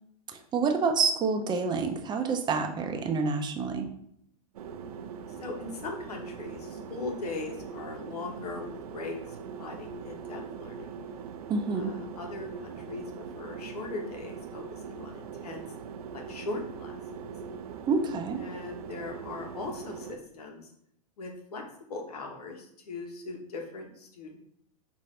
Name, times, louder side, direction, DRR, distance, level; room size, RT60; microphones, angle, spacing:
voice 1, 0.3-3.9 11.5-11.9 17.9-18.4, right 4 dB, 25° right, 5 dB, 0.5 m, -28 dB
sound 1, 4.5-20.2, right 6 dB, 80° right, 0.5 m, -41 dB
voice 2, 5.4-10.9 11.7-13.0 13.3-15.6 16.1-17.3 18.4-20.7 21.2-21.6 21.9-24.4, left 3 dB, 85° left, 3 dB, 1.1 m, -40 dB
5.6 x 2.6 x 3.2 m, 0.69 s
hypercardioid pair, 125°, 19 cm